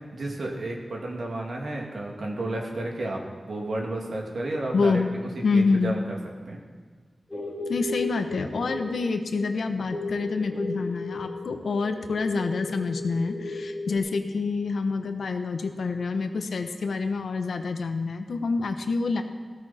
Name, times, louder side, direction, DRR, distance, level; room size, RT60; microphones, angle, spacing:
voice 1, 0.1-3.2 3.5-5.0 5.5-6.2 6.5-6.6, right 2 dB, 70° right, -1 dB, 2.4 m, -31 dB
voice 2, 4.7-5.1 5.4-5.9 7.7-19.2, left 4 dB, 85° left, 6 dB, 1.0 m, -27 dB
sound 1, 7.3-14.0, left 2 dB, 10° left, 2.4 m, -35 dB
15.5 x 14.0 x 4.3 m, 1.5 s
wide cardioid pair, 105°, 0 cm